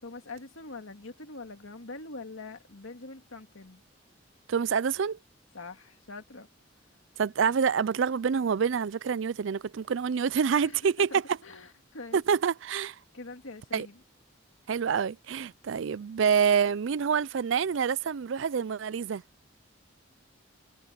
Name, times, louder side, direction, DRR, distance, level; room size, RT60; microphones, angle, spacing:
voice 1, 0.0-3.8 5.5-6.5 10.6-12.2 13.1-14.0, left 3 dB, 85° left, 2.1 m, -44 dB
voice 2, 4.5-5.2 7.2-11.2 12.1-13.0 13.7-13.9 14.7-19.2, right 6 dB, 70° right, 0.4 m, -27 dB
head